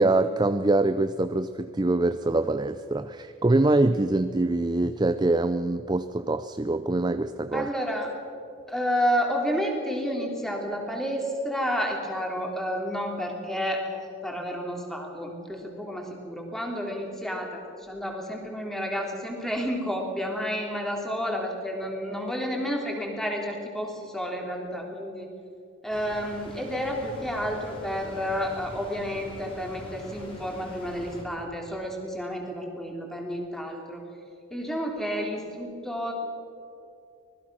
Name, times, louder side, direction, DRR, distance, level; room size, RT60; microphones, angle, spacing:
voice 1, 0.0-7.7, right 2 dB, 20° right, 11 dB, 0.4 m, -24 dB
voice 2, 7.5-8.1 8.7-25.3 25.8-34.0 34.5-36.1, equal, ahead, 0 dB, 3.4 m, -30 dB
sound 1, 25.9-31.2, left 1 dB, 25° left, 4.6 m, -43 dB
25.5 x 20.0 x 6.3 m, 2.6 s
head